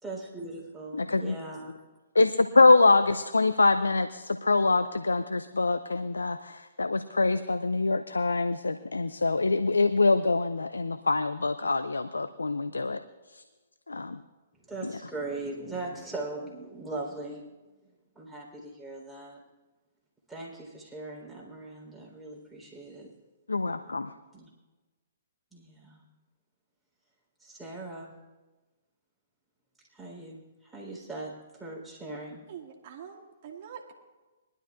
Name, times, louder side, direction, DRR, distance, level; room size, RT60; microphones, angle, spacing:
voice 1, 0.0-1.9 14.7-17.5 18.2-19.4 20.3-23.1 24.3-24.5 25.5-26.0 27.4-28.1 29.9-32.4, right 2 dB, ahead, -5 dB, 3.8 m, -40 dB
voice 2, 0.9-1.4 2.2-13.0 13.3-13.4 13.9-14.2 14.8-14.9 23.5-24.1, left 3 dB, 90° left, 11 dB, 0.4 m, -24 dB
voice 3, 32.5-33.9, right 8 dB, 50° right, 1 dB, 2.0 m, -44 dB
21.5 x 12.0 x 2.5 m, 1.2 s
hypercardioid pair, 125°, 0 cm